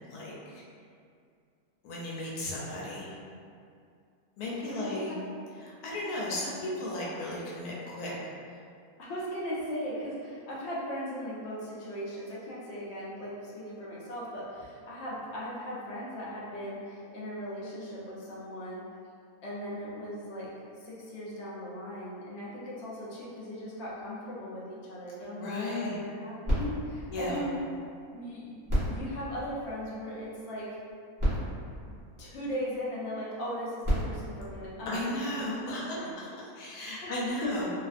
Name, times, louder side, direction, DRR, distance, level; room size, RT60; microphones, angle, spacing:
voice 1, 0.1-0.6 1.8-3.1 4.4-5.1 5.6-8.1 25.4-26.0 27.1-27.4 34.9-37.7, left 1 dB, 85° left, -5 dB, 1.1 m, -35 dB
voice 2, 4.4-5.2 9.0-18.8 19.4-27.6 28.1-28.6 28.9-30.7 32.2-36.2 37.0-37.1 37.4-37.7, equal, 60° left, -7 dB, 0.7 m, -38 dB
sound 1, 26.4-28.1 28.6-30.2 30.9-31.0 31.2-32.8 33.6-35.4 36.1-36.2, equal, 15° right, 0.8 m, -33 dB
2.5 x 2.4 x 2.4 m, 2.4 s
omnidirectional pair, 1.6 m